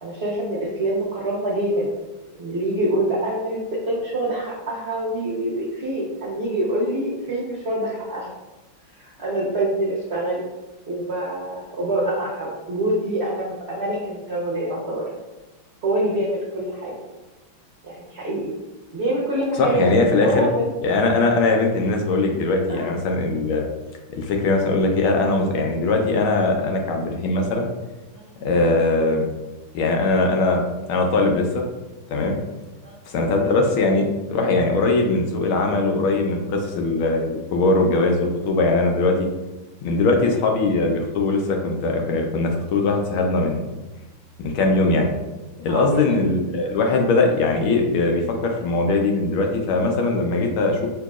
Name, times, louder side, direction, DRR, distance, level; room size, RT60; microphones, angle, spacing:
voice 1, 0.0-1.9 2.4-8.3 9.0-10.4 10.9-15.1 15.8-16.9 17.8-18.5 18.9-19.9 20.1-20.7 22.7-22.9 28.1-28.3 32.8-32.9 45.7-46.1 46.6-46.8, right 1 dB, 60° right, -6 dB, 0.6 m, -25 dB
voice 2, 19.6-20.5 20.8-23.7 24.1-27.7 28.4-29.3 29.7-31.6 32.1-32.4 33.1-39.3 39.8-43.8 44.4-45.1 45.6-50.9, left 3 dB, 80° left, 2 dB, 1.5 m, -21 dB
6.2 x 3.0 x 2.4 m, 1.1 s
omnidirectional pair, 2.3 m